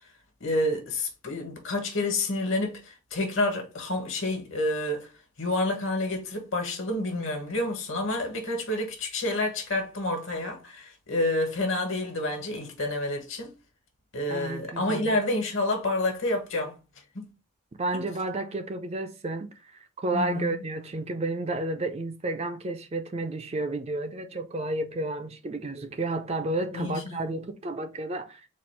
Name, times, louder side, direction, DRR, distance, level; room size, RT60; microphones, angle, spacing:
voice 1, 0.4-5.1 5.4-13.5 14.1-16.7 17.1-17.3 20.1-20.6 26.7-27.3, left 2 dB, 60° left, 1.4 m, -29 dB
voice 2, 14.3-15.1 17.8-28.6, right 2 dB, 30° right, 0.4 m, -31 dB
4.2 x 2.4 x 4.6 m
head